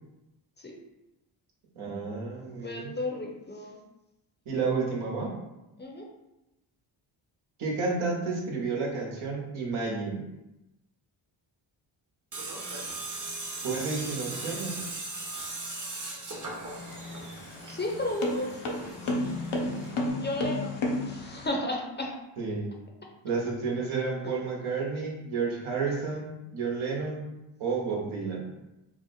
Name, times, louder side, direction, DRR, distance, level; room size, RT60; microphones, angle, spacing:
voice 1, 1.8-2.9 4.5-5.4 7.6-10.2 13.6-14.8 22.4-22.7 23.2-27.2 27.6-28.5, right 4 dB, 75° right, -2 dB, 1.0 m, -31 dB
voice 2, 2.6-3.8 5.8-6.1 17.7-19.1 20.1-20.8 21.0-22.1 24.2-24.5, left 1 dB, 20° left, 0 dB, 0.6 m, -34 dB
Tools, 12.3-20.1, right 2 dB, 40° right, 0.9 m, -38 dB
sound 1, 16.7-21.5, left 2 dB, 75° left, 0.8 m, -32 dB
2.8 x 2.1 x 4.0 m, 0.95 s
supercardioid pair, 65°, 48 cm